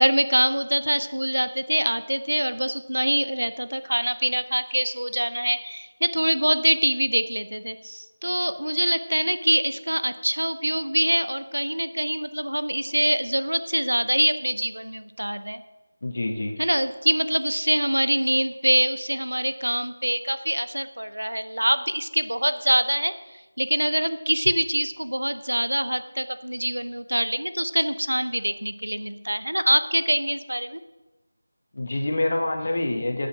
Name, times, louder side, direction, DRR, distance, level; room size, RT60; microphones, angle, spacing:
voice 1, 0.0-15.6 16.6-23.1 23.6-30.8, right 1 dB, 80° right, 11 dB, 0.8 m, -24 dB
voice 2, 16.0-16.6 31.7-33.3, left 2 dB, 45° left, 3 dB, 1.5 m, -26 dB
12.5 x 7.2 x 6.1 m, 1.1 s
figure-of-eight pair, 165°, 0 cm